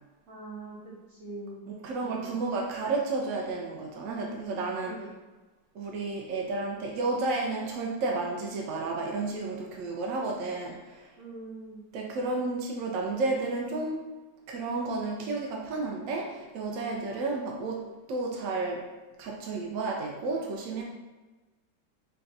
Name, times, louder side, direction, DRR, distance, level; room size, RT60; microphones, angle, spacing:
voice 1, 0.3-1.7 2.0-2.3 4.8-5.0 11.2-11.8, right 2 dB, 50° right, -5 dB, 1.2 m, -43 dB
voice 2, 1.7-5.1 5.8-11.1 11.9-14.0 14.5-18.9 19.2-20.8, right 3 dB, 85° right, 0 dB, 0.7 m, -32 dB
3.5 x 2.3 x 4.0 m, 1.2 s
omnidirectional pair, 2.0 m